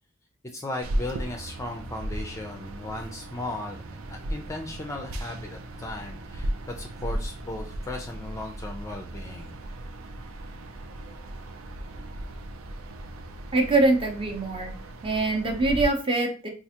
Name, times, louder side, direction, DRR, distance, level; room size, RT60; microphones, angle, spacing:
voice 1, 0.4-3.8 4.1-9.5, left 2 dB, 15° left, 3 dB, 0.4 m, -36 dB
sound 1, 0.8-15.8, right 1 dB, 85° right, 0.5 m, -36 dB
voice 2, 13.5-14.7 15.0-16.5, right 2 dB, 25° right, 3 dB, 0.7 m, -23 dB
4.5 x 2.4 x 2.8 m, 0.36 s
head